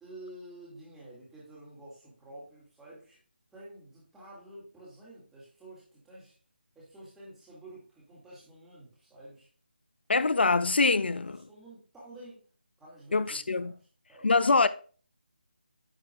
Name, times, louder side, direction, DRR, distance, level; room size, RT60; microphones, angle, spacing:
voice 1, 0.0-3.2 3.5-6.3 6.8-9.5 11.1-12.4 12.8-13.8 14.1-14.3, right 1 dB, 5° right, 2.1 m, -50 dB
voice 2, 10.1-11.4 13.1-13.7 14.2-14.7, left 3 dB, 75° left, 0.4 m, -24 dB
9.8 x 5.1 x 2.4 m
figure-of-eight pair, 160°, 6 cm